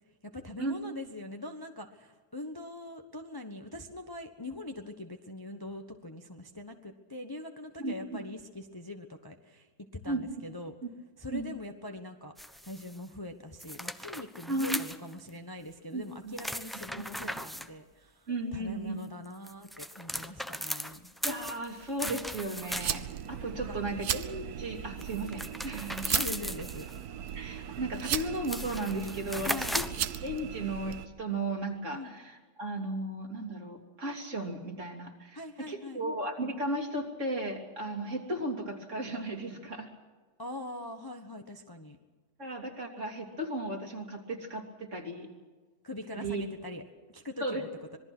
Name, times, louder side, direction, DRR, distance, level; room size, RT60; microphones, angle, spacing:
voice 1, 0.2-10.7 11.2-12.4 12.6-21.1 23.5-23.8 26.1-26.9 29.4-29.8 31.9-32.2 35.3-36.0 40.4-42.0 45.8-48.0, left 1 dB, 15° left, 5 dB, 1.0 m, -42 dB
voice 2, 7.8-8.2 10.1-10.2 11.3-11.5 14.5-14.8 15.9-16.3 18.3-19.0 21.2-26.2 27.3-29.8 30.2-35.4 35.7-39.9 42.4-45.3 46.2-46.4 47.4-47.6, right 1 dB, 45° right, 2 dB, 3.3 m, -35 dB
sound 1, 12.4-13.0 13.6-15.3 16.3-17.7 19.3-23.2 25.0-27.0 28.0-28.1 28.3-30.1, equal, ahead, 0.5 m, -37 dB
sound 2, 22.8-31.1, right 9 dB, 70° right, 1.4 m, -37 dB
26.5 x 21.0 x 6.1 m, 1.4 s
omnidirectional pair, 1.8 m